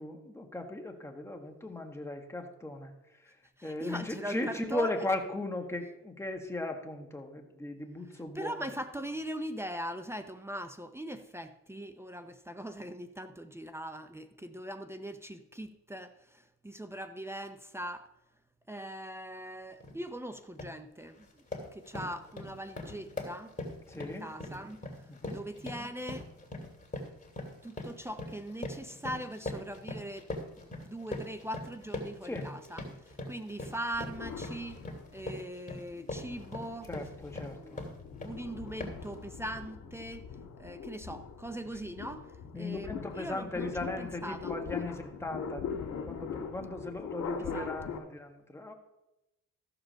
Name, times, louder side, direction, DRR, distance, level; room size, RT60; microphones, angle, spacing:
voice 1, 0.0-2.9 3.6-8.6 23.9-24.3 25.1-25.4 32.2-32.5 36.9-37.8 42.5-48.7, left 2 dB, 10° left, 1.7 m, -37 dB
voice 2, 3.6-5.0 8.3-18.1 18.7-21.4 21.7-23.5 24.0-24.8 25.3-26.3 27.6-30.3 30.6-34.8 35.1-36.9 37.6-40.2 40.6-42.3 42.5-42.9 43.2-45.0 47.5-47.7, right 1 dB, 10° right, 0.7 m, -41 dB
sound 1, 19.8-20.0 20.4-20.8 21.2-38.4 38.8-39.1, left 2 dB, 25° left, 2.5 m, -42 dB
sound 2, 33.9-35.4 35.9-48.0, left 6 dB, 70° left, 2.1 m, -42 dB
14.0 x 5.0 x 6.3 m
cardioid pair, 90°, 30 cm